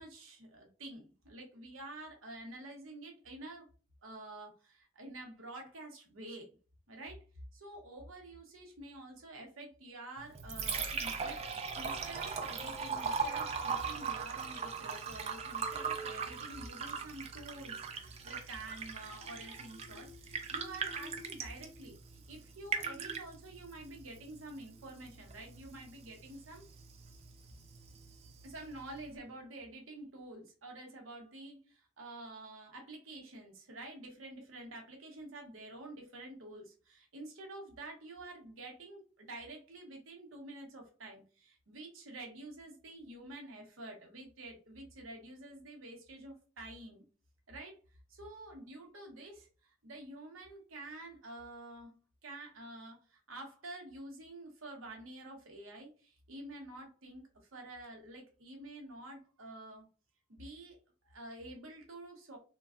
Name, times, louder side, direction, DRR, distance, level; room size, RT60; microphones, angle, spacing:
voice 1, 0.0-3.7 4.0-6.5 6.9-7.2 7.5-26.6 28.4-47.0 47.5-47.8 48.1-59.9 60.3-60.8 61.0-62.4, right 2 dB, 85° right, 2 dB, 0.9 m, -49 dB
Liquid, 10.2-29.2, right 5 dB, 30° right, 0.3 m, -40 dB
3.2 x 2.2 x 2.4 m, 0.36 s
head